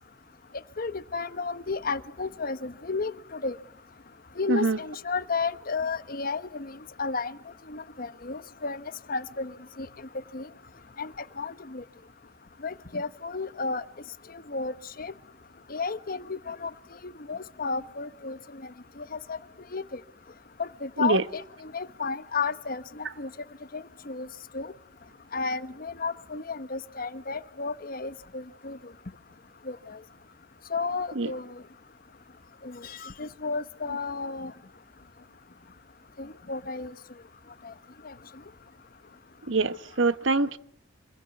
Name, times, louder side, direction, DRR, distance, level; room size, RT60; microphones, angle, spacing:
voice 1, 0.8-3.5 4.4-6.7 7.0-7.4 7.7-8.8 9.1-9.5 9.8-9.9 10.3-10.5 11.0-11.1 11.4-11.8 12.6-13.8 14.5-14.7 15.0-15.1 15.7-16.7 17.0-18.4 19.0-19.4 19.7-19.8 20.6-23.3 23.7-24.3 24.5-24.7 25.3-28.8 29.7-30.0 30.7-31.4 32.6-34.5 36.2-36.9 37.6-37.7 38.0-38.1, left 4 dB, 50° left, 1.1 m, -32 dB
voice 2, 4.5-4.8 21.0-21.2 31.1-31.3 39.5-40.6, right 3 dB, 85° right, 1.1 m, -24 dB
27.0 x 22.0 x 9.5 m
head